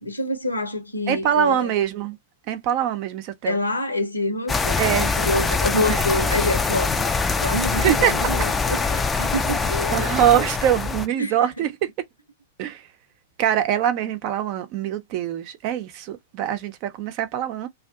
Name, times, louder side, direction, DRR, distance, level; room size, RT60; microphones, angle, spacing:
voice 1, 0.0-1.7 3.4-7.1 7.4-10.2 11.2-11.4, left 1 dB, 90° left, 0.9 m, -26 dB
voice 2, 1.1-2.2 2.5-3.6 4.8-5.1 5.7-6.3 7.7-8.1 9.9-11.9 12.6-12.9 13.4-17.7, right 10 dB, 45° right, 0.6 m, -23 dB
sound 1, 4.5-11.1, left 4 dB, 10° left, 0.4 m, -23 dB
2.6 x 2.4 x 2.3 m
figure-of-eight pair, 100°, 0 cm